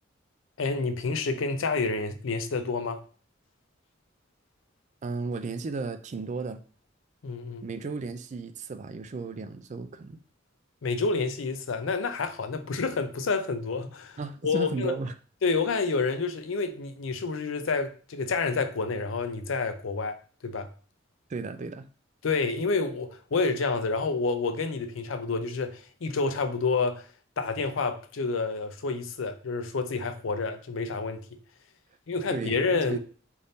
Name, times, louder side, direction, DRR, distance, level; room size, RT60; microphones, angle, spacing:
voice 1, 0.6-3.0 7.2-7.6 10.8-14.9 15.4-20.7 22.2-27.0 27.4-31.2 32.1-33.0, left 4 dB, 85° left, 0.5 m, -29 dB
voice 2, 5.0-6.6 7.6-10.2 14.2-15.1 21.3-21.9 32.3-33.0, right 4 dB, 40° right, 0.3 m, -34 dB
3.5 x 2.6 x 3.9 m
head